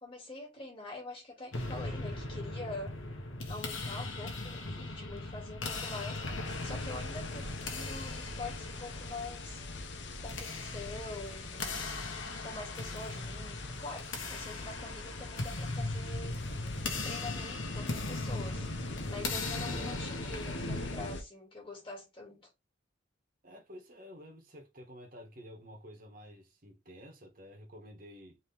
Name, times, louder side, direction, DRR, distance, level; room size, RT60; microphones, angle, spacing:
voice 1, 0.0-3.0 3.5-9.6 10.2-11.9 12.4-16.4 17.0-18.7 19.0-22.5, left 2 dB, 25° left, 2.2 m, -45 dB
sound 1, 1.5-21.0, left 2 dB, 80° left, 1.4 m, -39 dB
sound 2, 6.4-21.2, left 2 dB, 60° left, 0.8 m, -42 dB
voice 2, 23.4-28.4, equal, 45° right, 1.6 m, -51 dB
4.3 x 3.3 x 3.4 m
head